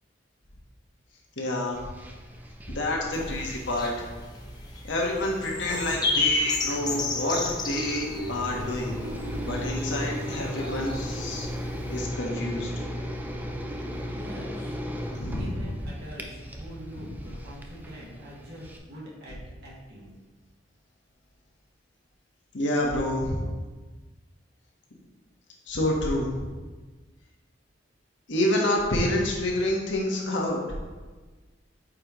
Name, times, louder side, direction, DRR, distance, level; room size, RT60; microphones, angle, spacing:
voice 1, 1.4-1.8 2.7-3.9 4.9-7.4 7.6-9.0 9.4-11.5 11.9-12.7 15.2-15.7 16.9-17.1 22.5-23.4 25.7-26.4 28.3-30.6, left 1 dB, 85° left, -1 dB, 1.4 m, -28 dB
sound 1, 1.7-18.8, equal, 10° right, 0.6 m, -37 dB
sound 2, 3.1-12.0, left 3 dB, 20° left, 0.8 m, -33 dB
sound 3, 5.5-11.0, right 1 dB, 75° right, 0.6 m, -41 dB
voice 2, 14.1-14.8 15.3-20.1, equal, 60° right, -5 dB, 2.1 m, -44 dB
8.7 x 5.1 x 3.1 m, 1.3 s
head